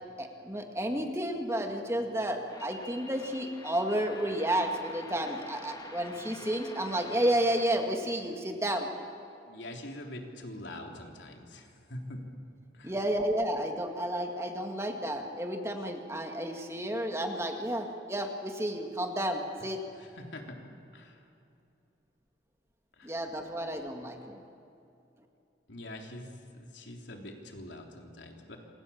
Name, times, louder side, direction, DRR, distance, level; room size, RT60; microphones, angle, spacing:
voice 1, 0.2-8.9 12.8-19.8 23.0-24.4, right 1 dB, 15° right, 3 dB, 2.0 m, -31 dB
sound 1, 2.5-7.7, left 2 dB, 20° left, 1.8 m, -47 dB
voice 2, 9.5-12.2 12.7-13.0 19.9-20.6 20.9-21.2 23.0-23.2 25.7-28.6, left 1 dB, 80° left, 2 dB, 3.5 m, -44 dB
27.5 x 25.5 x 7.3 m, 2.6 s
head